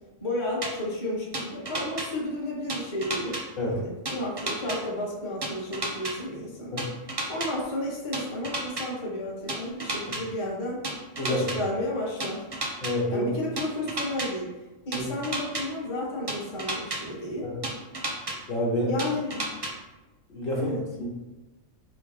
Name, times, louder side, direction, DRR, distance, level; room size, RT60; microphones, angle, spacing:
voice 1, 0.2-3.4 3.6-6.8 7.3-10.9 11.3-12.4 13.1-14.5 14.8-17.5 18.9-19.5 20.5-20.8, left 1 dB, 25° left, -4 dB, 0.9 m, -32 dB
sound 1, 0.6-0.7 1.3-2.1 2.7-3.4 4.1-4.8 5.4-6.1 6.8-7.5 8.1-8.9 9.5-10.2 10.8-11.6 12.2-12.9 13.6-14.3 14.9-15.6 16.3-17.0 17.6-18.4 19.0-19.7, right 2 dB, 30° right, 0.5 m, -31 dB
voice 2, 12.8-13.3 14.9-15.0 17.4-17.6 18.5-18.9 20.3-20.7 21.0-21.1, left 1 dB, 50° left, -4 dB, 1.2 m, -28 dB
3.5 x 3.1 x 4.9 m, 1.1 s
omnidirectional pair, 1.3 m